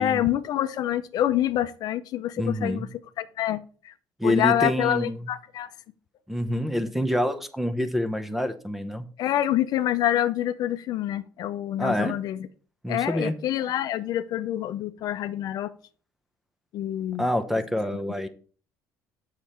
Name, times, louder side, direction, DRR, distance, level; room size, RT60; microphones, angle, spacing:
voice 1, 0.0-3.9 4.2-5.7 9.2-12.5 12.9-15.7 16.7-17.3, left 12 dB, 60° left, 0.6 m, -27 dB
voice 2, 2.4-2.9 4.2-5.2 6.3-9.0 11.8-12.1 12.8-13.3 17.2-18.3, equal, 5° right, 0.8 m, -27 dB
7.1 x 6.5 x 4.3 m
cardioid pair, 115°, 8 cm